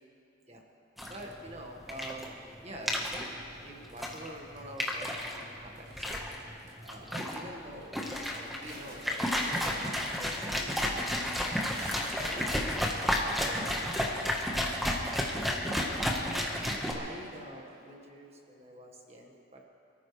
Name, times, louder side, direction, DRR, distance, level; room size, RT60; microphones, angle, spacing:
sound 1, 1.0-16.9, left 1 dB, ahead, 1.4 m, -32 dB
voice 1, 1.1-2.3 2.6-3.3 3.6-6.2 6.8-7.9 8.3-9.9 10.2-11.5 12.1-12.9 13.2-14.2 14.4-14.5 15.2-19.6, right 1 dB, 35° right, 1 dB, 1.7 m, -47 dB
sound 2, 3.9-5.0 5.8-6.3 6.6-7.1 7.5-7.9 8.2-15.3 15.9-16.0 16.3-17.9, right 1 dB, 55° right, 4.7 m, -50 dB
27.0 x 14.0 x 3.4 m, 2.7 s
head